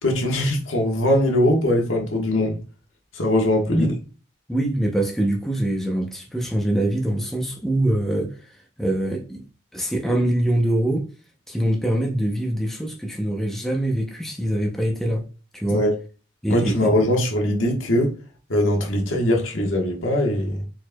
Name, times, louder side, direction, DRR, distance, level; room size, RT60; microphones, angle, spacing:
voice 1, 0.0-2.6 3.1-3.9 15.7-16.0 16.5-18.1 18.5-20.6, left 1 dB, 80° left, 1.3 m, -21 dB
voice 2, 4.5-9.4 9.7-11.1 11.5-15.2 15.5-15.8 16.4-16.9, right 1 dB, ahead, 0.6 m, -24 dB
4.6 x 4.2 x 2.2 m
head